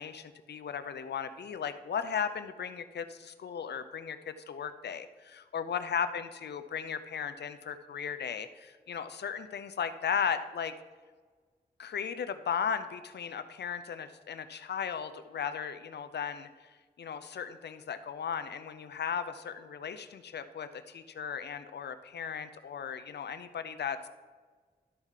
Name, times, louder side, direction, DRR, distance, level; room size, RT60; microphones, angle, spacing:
voice 1, 0.0-10.8 11.8-24.1, left 7 dB, 80° left, 11 dB, 0.6 m, -36 dB
12.5 x 4.7 x 5.7 m, 1.4 s
cardioid pair, 45°, 17 cm